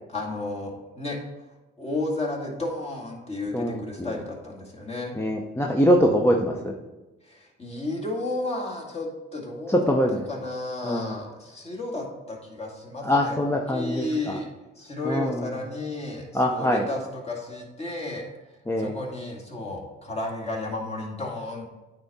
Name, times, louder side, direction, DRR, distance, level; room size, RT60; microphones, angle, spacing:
voice 1, 0.1-1.2 1.8-5.1 7.2-9.8 10.3-14.5 14.8-18.3 18.8-21.7, left 2 dB, 30° left, -1 dB, 2.0 m, -33 dB
voice 2, 3.5-4.2 5.1-6.7 9.7-10.3 10.8-11.2 13.0-14.4 15.0-15.5 16.3-16.9 18.7-19.0, equal, 15° left, 0 dB, 0.7 m, -23 dB
9.0 x 3.6 x 4.2 m, 1.1 s
cardioid pair, 90°, 20 cm